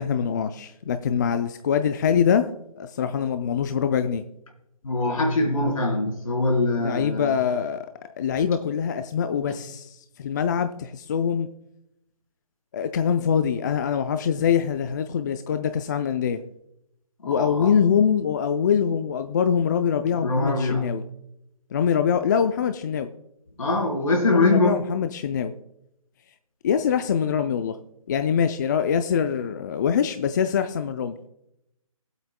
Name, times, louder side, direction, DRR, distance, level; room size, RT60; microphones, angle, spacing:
voice 1, 0.0-2.5 2.8-4.2 6.8-7.9 8.2-11.5 12.7-16.4 17.3-21.0 21.7-23.1 24.2-25.5 26.6-27.8 28.1-31.2, left 7 dB, 30° left, 9 dB, 0.4 m, -24 dB
voice 2, 4.8-7.4 17.2-17.7 20.2-20.9 23.6-24.8, left 2 dB, 70° left, 1 dB, 3.9 m, -23 dB
21.5 x 8.1 x 2.2 m, 0.83 s
hypercardioid pair, 150°, 18 cm